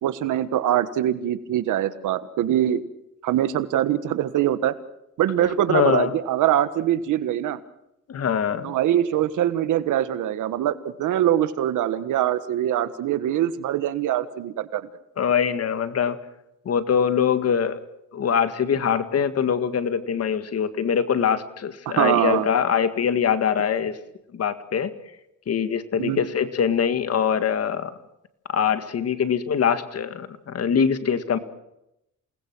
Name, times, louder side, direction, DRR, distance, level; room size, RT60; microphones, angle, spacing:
voice 1, 0.0-2.8 3.2-4.7 5.2-7.6 8.6-14.9 21.8-22.5 26.0-26.3, right 11 dB, 80° right, 13 dB, 1.5 m, -23 dB
voice 2, 5.7-6.1 8.1-8.7 15.2-16.2 16.7-17.8 18.1-24.0 24.3-24.9 25.5-27.9 28.5-31.4, left 7 dB, 55° left, 11 dB, 1.9 m, -23 dB
28.5 x 19.5 x 6.2 m, 0.84 s
cardioid pair, 90°, 30 cm